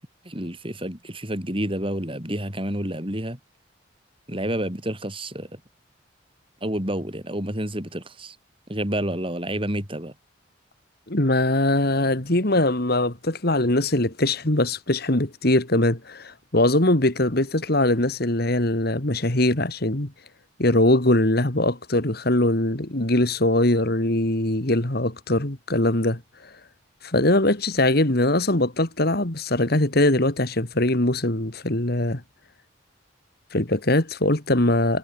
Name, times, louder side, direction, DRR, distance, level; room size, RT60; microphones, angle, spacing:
voice 1, 0.2-3.4 4.3-5.6 6.6-8.4 8.7-10.1, right 1 dB, 25° right, 6.3 m, -29 dB
voice 2, 11.1-20.1 20.6-26.2 27.0-32.2 33.5-35.0, left 1 dB, 50° left, 2.4 m, -21 dB
head